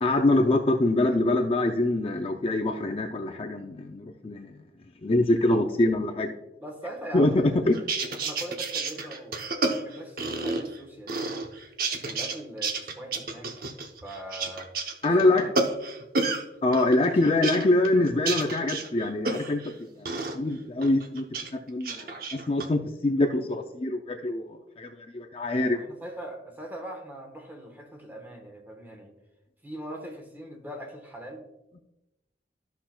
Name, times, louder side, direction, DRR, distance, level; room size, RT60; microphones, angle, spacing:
voice 1, 0.0-4.5 5.0-6.3 7.1-7.8 15.0-15.5 16.6-19.7 20.0-20.1 20.3-21.2 21.5-25.8, left 2 dB, 30° left, 5 dB, 0.4 m, -24 dB
voice 2, 6.6-7.8 8.1-11.3 12.0-13.7 14.0-14.7 15.0-15.5 17.1-17.2 25.7-29.1 29.6-31.5, right 1 dB, 10° right, 3 dB, 1.2 m, -41 dB
sound 1, 7.7-10.8 11.1-12.4 12.6-16.4 16.7-19.7 20.1-20.4 20.8-21.5 21.8-22.7, right 3 dB, 55° right, 0.8 m, -30 dB
13.5 x 5.8 x 2.3 m, 0.97 s
head